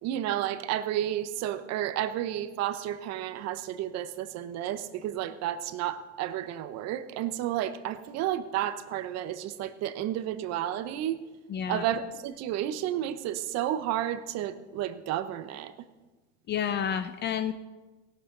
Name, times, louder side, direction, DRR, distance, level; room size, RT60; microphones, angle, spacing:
voice 1, 0.0-11.2 11.7-15.7, right 11 dB, 45° right, 12 dB, 1.0 m, -31 dB
voice 2, 11.5-11.8 16.5-17.5, left 8 dB, 30° left, 11 dB, 0.6 m, -30 dB
17.5 x 12.5 x 3.9 m, 1.2 s
supercardioid pair, 125°, 36 cm